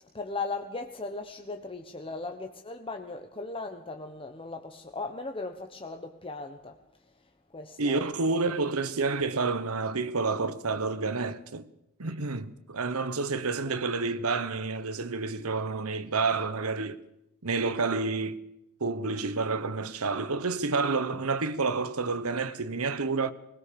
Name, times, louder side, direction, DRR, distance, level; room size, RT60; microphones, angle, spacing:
voice 1, 0.1-6.8 7.5-8.0 13.7-13.8, left 3 dB, 25° left, 1.2 m, -38 dB
voice 2, 7.8-11.7 12.0-17.0 17.4-18.4 18.8-23.3, right 4 dB, 75° right, 1.3 m, -29 dB
21.0 x 20.5 x 7.0 m
head